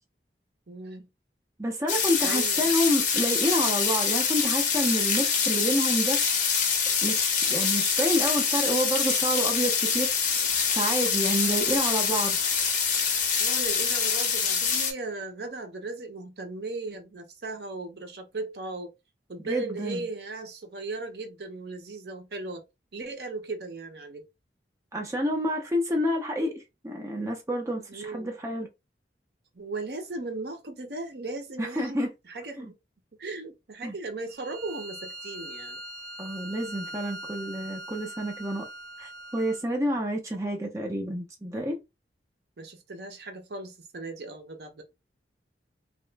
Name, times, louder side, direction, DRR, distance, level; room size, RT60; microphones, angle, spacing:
voice 1, 0.7-1.1 2.2-2.8 11.5-11.7 13.4-18.9 19.3-22.6 22.9-24.2 27.9-28.3 29.5-32.7 33.2-35.8 42.6-44.8, right 3 dB, 60° right, 0.7 m, -37 dB
voice 2, 1.6-6.2 7.0-10.1 10.7-12.4 19.4-20.0 24.9-28.7 31.6-32.1 32.6-32.7 33.8-33.9 36.2-38.7 39.0-41.8, equal, 15° right, 0.7 m, -28 dB
sound 1, 1.9-14.9, left 6 dB, 45° left, 0.8 m, -25 dB
Bowed string instrument, 34.3-39.7, right 1 dB, 40° right, 1.7 m, -41 dB
2.9 x 2.2 x 3.2 m
head